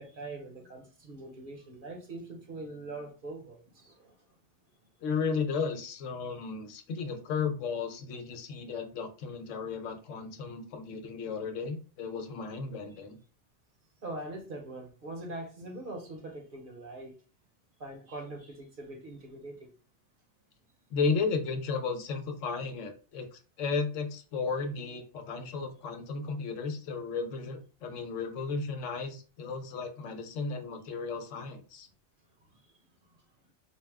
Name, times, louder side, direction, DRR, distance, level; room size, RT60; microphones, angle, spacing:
voice 1, 0.0-4.2 14.0-17.1 17.8-19.7 32.5-32.6, right 2 dB, 50° right, 0.9 m, -42 dB
voice 2, 5.0-13.2 20.9-31.9, left 5 dB, 80° left, 1.1 m, -34 dB
4.5 x 2.2 x 3.4 m
omnidirectional pair, 1.3 m